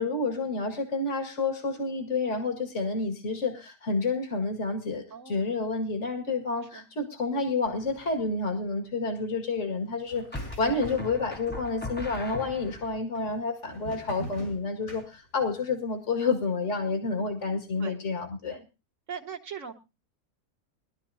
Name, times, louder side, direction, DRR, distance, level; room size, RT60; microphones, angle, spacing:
voice 1, 0.0-10.3 10.6-18.6, left 3 dB, 55° left, 3 dB, 2.3 m, -29 dB
voice 2, 5.1-5.5 6.7-6.9 10.7-10.9 17.8-18.0 18.5-18.6 19.1-19.7, right 6 dB, 60° right, 2 dB, 1.8 m, -40 dB
sound 1, 7.7-8.1 10.3-13.0, left 1 dB, 10° left, 1.0 m, -39 dB
sound 2, 10.1-11.5 11.8-12.5 13.1-15.6, equal, 75° left, 6.7 m, -44 dB
22.0 x 12.0 x 2.7 m, 0.28 s
omnidirectional pair, 1.5 m